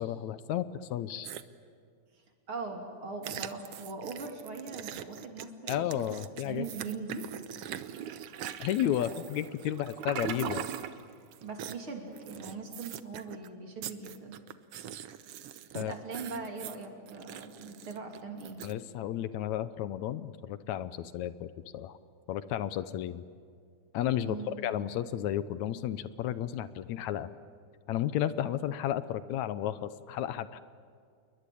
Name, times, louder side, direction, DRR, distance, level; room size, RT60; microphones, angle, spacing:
voice 1, 0.0-1.3 5.7-6.7 8.6-10.7 15.7-15.9 18.6-22.0 22.3-23.2 23.9-27.3 27.9-30.6, left 11 dB, 80° left, 13 dB, 2.2 m, -33 dB
sound 1, 1.2-1.4 3.2-9.9 10.2-11.0 11.3-11.8 12.1-13.5 13.8-18.7, right 11 dB, 65° right, 1.7 m, -44 dB
voice 2, 2.5-6.0 6.4-7.3 9.0-9.1 11.4-14.4 15.7-18.6 24.2-24.6, right 4 dB, 45° right, 3 dB, 3.7 m, -41 dB
Toilet flush, 7.6-11.0, right 9 dB, 80° right, 2.5 m, -39 dB
28.5 x 22.0 x 8.6 m, 2.2 s
omnidirectional pair, 3.3 m